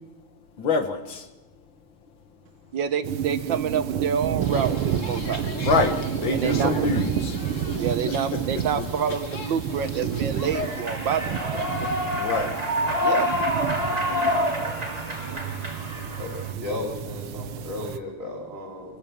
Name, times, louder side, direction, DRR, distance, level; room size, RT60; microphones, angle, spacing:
voice 1, 0.6-1.2 5.6-5.9 6.2-7.4 8.1-8.2 8.8-8.9 12.2-12.5, left 3 dB, 65° left, 6 dB, 2.6 m, -25 dB
voice 2, 2.7-5.5 6.3-6.7 7.8-11.7 13.0-13.3, right 7 dB, 65° right, 10 dB, 1.7 m, -28 dB
sound 1, 3.0-18.0, right 9 dB, 85° right, 1.8 m, -30 dB
sound 2, 4.4-10.8, left 3 dB, 40° left, 1.9 m, -37 dB
Human voice / Clapping / Cheering, 10.5-16.5, left 1 dB, 20° right, 2.9 m, -27 dB
voice 3, 16.2-19.0, left 2 dB, 40° right, 0 dB, 4.1 m, -35 dB
26.0 x 17.5 x 7.3 m, 1.1 s
omnidirectional pair, 2.3 m